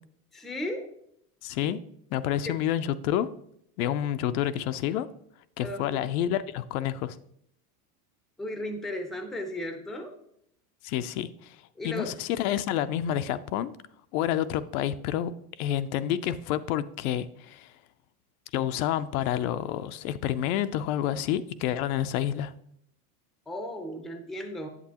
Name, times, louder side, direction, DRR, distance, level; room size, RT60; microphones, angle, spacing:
voice 1, 0.3-0.9 1.6-1.7 2.5-2.6 5.6-6.0 8.4-10.1 11.8-12.1 23.5-24.7, left 1 dB, ahead, 5 dB, 0.4 m, -35 dB
voice 2, 1.4-1.8 2.1-3.3 3.8-5.1 5.6-7.2 10.8-11.6 11.8-13.7 14.1-15.3 15.6-17.7 18.5-22.5, left 11 dB, 75° left, 12 dB, 0.6 m, -29 dB
8.4 x 7.4 x 2.9 m, 0.72 s
supercardioid pair, 140°, 44 cm